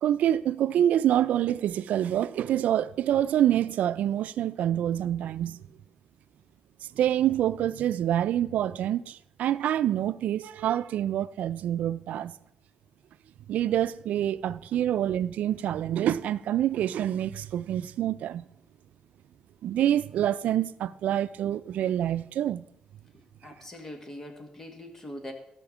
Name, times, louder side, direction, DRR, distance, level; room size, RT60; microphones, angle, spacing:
voice 1, 0.0-5.6 7.0-12.3 13.5-18.4 19.6-22.7, right 11 dB, 90° right, 0.5 m, -26 dB
voice 2, 23.4-25.3, left 1 dB, 20° left, 1.8 m, -42 dB
16.0 x 5.8 x 7.2 m
wide cardioid pair, 165°, 2 cm